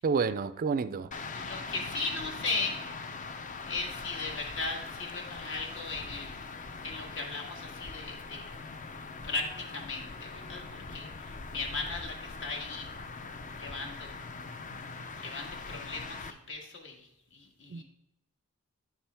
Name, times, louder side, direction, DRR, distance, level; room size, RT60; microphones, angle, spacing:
voice 1, 0.0-1.1 17.7-17.8, right 5 dB, 40° right, 0.3 m, -29 dB
sound 1, 1.1-16.3, left 4 dB, 35° left, 0.5 m, -42 dB
voice 2, 1.3-2.8 3.7-6.4 6.8-8.5 9.2-12.9 13.6-14.2 15.2-17.8, left 3 dB, 60° left, 1.7 m, -37 dB
9.6 x 7.3 x 3.4 m
head